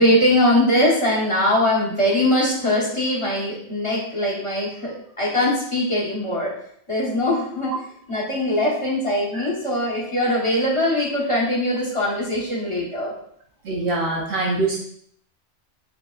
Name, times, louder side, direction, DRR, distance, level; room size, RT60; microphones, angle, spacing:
voice 1, 0.0-6.5 6.9-7.7 8.1-13.1, left 1 dB, 25° left, -5 dB, 1.2 m, -21 dB
voice 2, 13.6-14.8, right 3 dB, 60° right, -2 dB, 0.9 m, -24 dB
5.0 x 3.5 x 2.4 m, 0.65 s
omnidirectional pair, 1.2 m